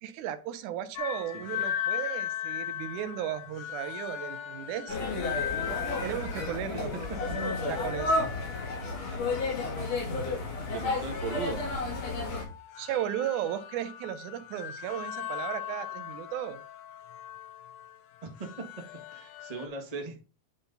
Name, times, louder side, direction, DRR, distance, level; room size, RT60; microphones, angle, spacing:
voice 1, 0.0-5.0 6.0-6.9 7.4-8.3 12.8-16.6, right 11 dB, 85° right, 12 dB, 2.3 m, -35 dB
sound 1, 1.0-19.7, left 10 dB, 70° left, 1.8 m, -39 dB
sound 2, 4.9-12.4, left 2 dB, 85° left, 4.3 m, -32 dB
voice 2, 10.7-11.6 18.2-18.5 19.1-20.2, right 3 dB, 25° right, 2 dB, 0.9 m, -38 dB
10.0 x 4.1 x 3.9 m, 0.32 s
omnidirectional pair, 3.4 m